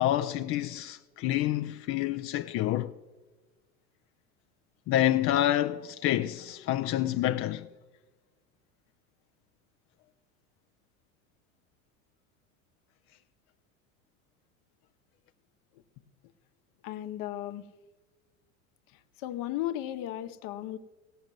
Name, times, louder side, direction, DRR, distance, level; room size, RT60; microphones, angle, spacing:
voice 1, 0.0-2.9 4.9-7.7, left 13 dB, 35° left, 0.4 m, -28 dB
voice 2, 16.8-17.6 19.2-20.8, left 13 dB, 50° left, 1.0 m, -35 dB
16.5 x 6.7 x 7.5 m
hypercardioid pair, 85°, 42 cm